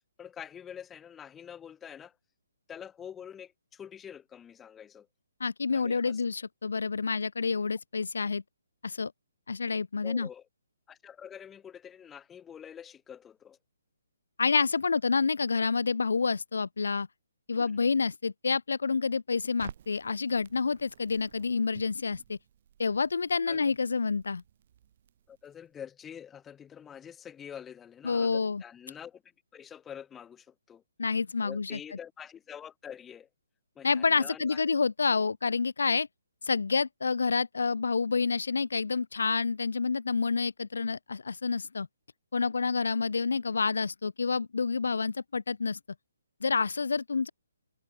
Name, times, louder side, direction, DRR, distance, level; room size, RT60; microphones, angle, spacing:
voice 1, 0.2-2.1 2.7-5.1 5.7-6.2 10.0-10.4 10.9-13.6 17.6-17.7 23.5-23.7 25.3-29.2 29.5-30.8 31.4-33.3 33.8-34.6, left 8 dB, 5° left, 1.0 m, -46 dB
voice 2, 5.4-8.4 8.8-9.1 9.5-10.3 14.4-17.1 17.5-22.4 22.8-24.4 28.0-28.6 31.0-31.8 33.8-36.1 36.5-41.9 42.3-45.8 46.4-47.3, left 4 dB, 80° left, 0.5 m, -28 dB
Crackle, 19.6-25.7, right 10 dB, 30° right, 3.0 m, -53 dB
hypercardioid pair, 175°, 0 cm